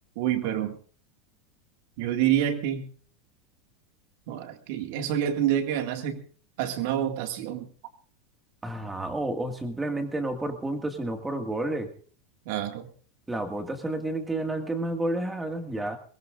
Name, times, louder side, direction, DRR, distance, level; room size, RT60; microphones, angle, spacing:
voice 1, 0.2-0.7 2.0-2.9 4.3-6.2 6.6-7.7 12.5-12.9, right 10 dB, 65° right, 6 dB, 2.1 m, -27 dB
voice 2, 8.6-11.9 13.3-16.0, right 1 dB, 10° right, 6 dB, 2.0 m, -30 dB
22.5 x 19.0 x 2.6 m, 0.43 s
supercardioid pair, 140°, 0 cm